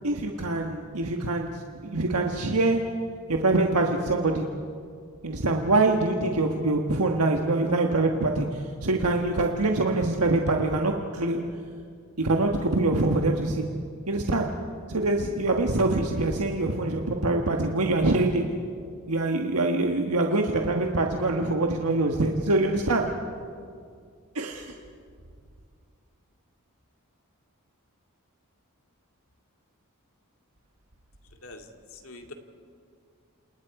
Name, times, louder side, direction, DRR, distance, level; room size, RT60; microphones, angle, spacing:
voice 1, 0.0-2.8 3.3-4.5 5.2-11.4 12.2-13.6 14.1-14.5 14.9-18.4 19.1-23.1 24.3-24.8, right 2 dB, 85° right, 2 dB, 1.5 m, -24 dB
voice 2, 31.9-32.3, left 2 dB, 65° left, 4 dB, 2.3 m, -43 dB
29.0 x 27.5 x 4.9 m, 2.2 s
head